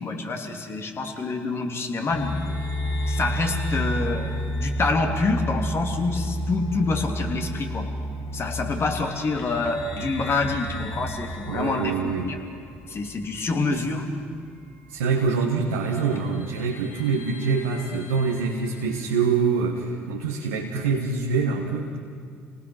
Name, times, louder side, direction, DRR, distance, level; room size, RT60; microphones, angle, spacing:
voice 1, 0.0-2.4 3.1-7.9 8.3-11.9 12.2-12.4 12.9-14.0, left 3 dB, 45° left, 3 dB, 3.1 m, -27 dB
sound 1, 2.1-14.0 14.3-14.4 15.4-15.5 16.0-19.1, equal, 70° left, 2.9 m, -32 dB
voice 2, 11.5-12.3 13.7-13.8 14.9-22.0, right 5 dB, 90° right, -1 dB, 1.6 m, -25 dB
29.0 x 19.0 x 6.4 m, 2.3 s
hypercardioid pair, 60°, 6 cm